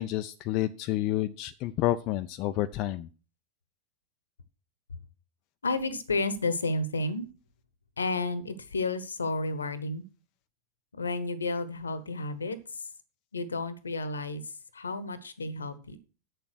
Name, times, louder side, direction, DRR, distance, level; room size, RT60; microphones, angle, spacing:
voice 1, 0.0-3.1, left 14 dB, 40° left, 10 dB, 0.5 m, -29 dB
voice 2, 5.6-7.3 8.0-10.0 10.9-12.9 13.3-16.0, left 2 dB, 75° left, 15 dB, 1.0 m, -32 dB
8.5 x 6.9 x 6.3 m, 0.35 s
figure-of-eight pair, 90°, 0 cm